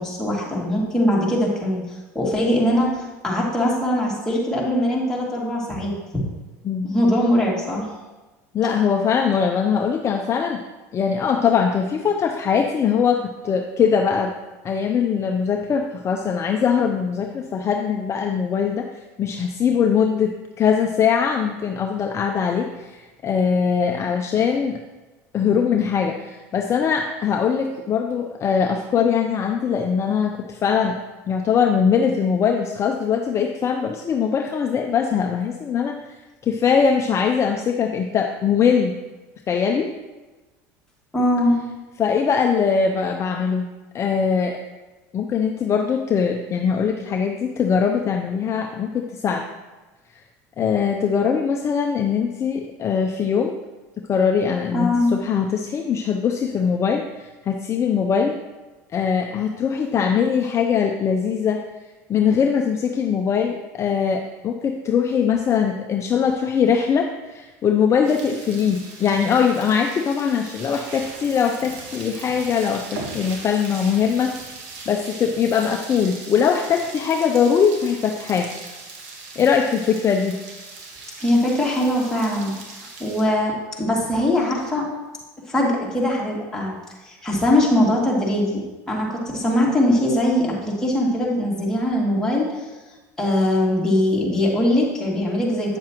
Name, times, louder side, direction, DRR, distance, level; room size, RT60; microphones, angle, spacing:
voice 1, 0.0-1.8 2.1-5.9 6.8-7.9 41.1-41.5 54.7-55.1 81.2-84.9 85.5-86.7 87.0-88.6 88.9-92.6 93.2-95.8, left 1 dB, 5° left, -5 dB, 2.4 m, -21 dB
voice 2, 8.5-10.6 10.9-14.3 14.6-18.9 19.2-24.8 25.3-31.0 31.3-38.9 39.5-39.9 42.0-43.6 43.9-44.6 45.1-49.5 50.1-50.2 50.6-53.5 54.1-58.4 58.9-61.6 62.1-74.3 74.9-78.5 79.4-80.3, left 6 dB, 35° left, 3 dB, 0.6 m, -21 dB
sound 1, 68.0-83.2, right 3 dB, 75° right, 1.5 m, -39 dB
8.6 x 7.3 x 3.0 m, 1.2 s
supercardioid pair, 100°, 8 cm